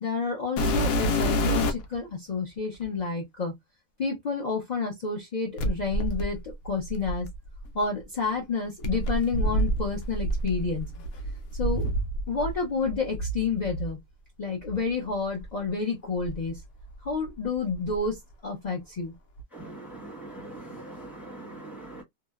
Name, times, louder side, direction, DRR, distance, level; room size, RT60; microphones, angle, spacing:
voice 1, 0.0-3.5 4.0-7.3 7.7-10.9 11.6-11.9 12.3-14.0 14.4-16.6 17.0-18.2 18.4-19.1, left 4 dB, 55° left, 0.4 m, -29 dB
sound 1, 0.6-2.0 2.8-2.9 5.6-7.7 8.8-12.6 12.8-13.9 14.7-14.8 15.4-15.5 16.2-17.3 17.5-18.1 19.4-19.5, equal, 70° left, 1.0 m, -28 dB
voice 2, 19.5-22.0, right 2 dB, ahead, 0.7 m, -42 dB
2.8 x 2.1 x 2.2 m
omnidirectional pair, 1.7 m